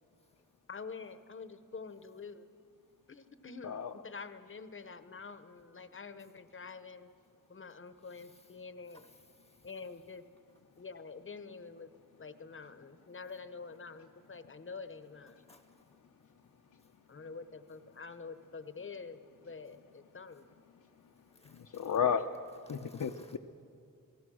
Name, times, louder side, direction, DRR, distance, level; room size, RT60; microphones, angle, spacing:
voice 1, 0.7-2.5 3.1-7.1 7.5-9.0 9.6-10.2 10.8-11.9 12.2-15.4 17.1-20.5, left 4 dB, 35° left, 11 dB, 0.9 m, -47 dB
voice 2, 3.6-3.9 21.4-22.3 22.7-23.4, left 7 dB, 60° left, 3 dB, 0.8 m, -33 dB
voice 3, 8.0-8.5 8.9-9.7 15.4-15.9 21.3-21.9 22.7-23.3, left 1 dB, 10° left, 7 dB, 1.0 m, -62 dB
28.0 x 18.0 x 6.3 m, 2.4 s
wide cardioid pair, 145°, 35 cm